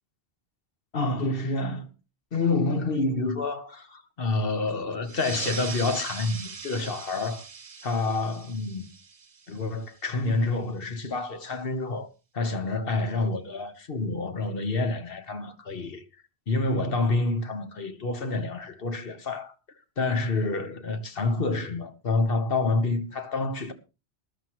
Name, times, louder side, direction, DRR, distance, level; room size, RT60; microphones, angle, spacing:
voice 1, 0.9-1.9 2.3-7.5 7.8-8.9 9.5-12.1 12.3-16.0 16.5-19.5 20.0-23.7, left 3 dB, 60° left, 1.4 m, -28 dB
sound 1, 5.0-10.1, right 5 dB, 35° right, 0.8 m, -40 dB
19.5 x 11.5 x 3.1 m
omnidirectional pair, 1.1 m